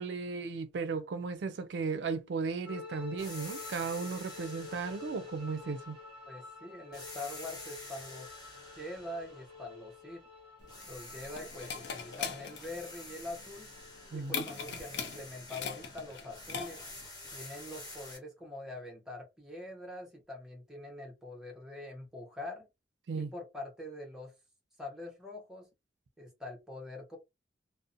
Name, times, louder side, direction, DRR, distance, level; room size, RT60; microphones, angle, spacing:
voice 1, 0.0-6.0 14.1-14.4 23.1-23.3, right 4 dB, 75° right, 0.4 m, -35 dB
sound 1, 2.6-14.3, left 5 dB, 25° right, 1.2 m, -50 dB
sound 2, 3.2-6.5 6.9-10.3 10.7-18.2, left 2 dB, 25° left, 1.1 m, -49 dB
voice 2, 6.2-8.3 8.7-10.2 10.9-13.7 14.1-16.8 17.3-22.7 23.1-24.3 24.8-25.7 26.2-27.2, left 2 dB, 5° right, 0.7 m, -44 dB
sound 3, 10.6-17.1, left 6 dB, 75° left, 0.5 m, -41 dB
2.5 x 2.0 x 2.5 m
head